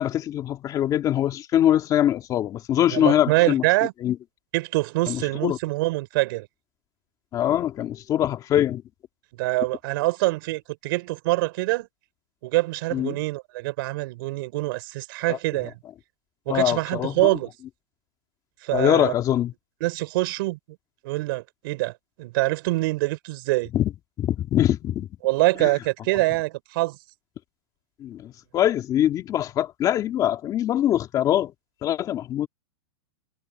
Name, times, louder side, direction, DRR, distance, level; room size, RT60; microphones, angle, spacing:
voice 1, 0.0-3.6 4.0-4.2 5.1-5.6 7.3-8.8 12.9-13.2 15.3-15.4 16.5-17.4 18.7-19.5 23.7-23.9 24.2-25.1 25.6-25.7 28.0-31.5 31.8-32.5, left 11 dB, 25° left, 2.2 m, -23 dB
voice 2, 2.9-3.9 4.5-6.5 9.4-11.9 12.4-15.7 16.5-17.5 18.6-19.1 19.8-20.6 21.0-23.7 25.2-27.0, right 21 dB, 55° right, 4.6 m, -25 dB
supercardioid pair, 150°, 14 cm